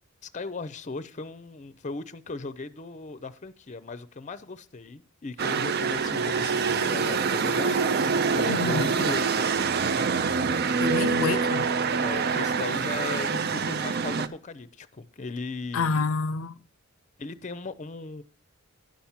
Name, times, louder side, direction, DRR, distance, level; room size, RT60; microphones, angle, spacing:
voice 1, 0.2-9.5 12.0-16.0 17.2-18.2, left 3 dB, 35° left, 0.5 m, -37 dB
sound 1, 5.4-14.3, right 5 dB, 50° right, 0.5 m, -25 dB
voice 2, 8.5-8.9 10.8-11.7 15.7-16.6, left 4 dB, 85° left, 0.5 m, -28 dB
10.5 x 5.9 x 7.1 m
head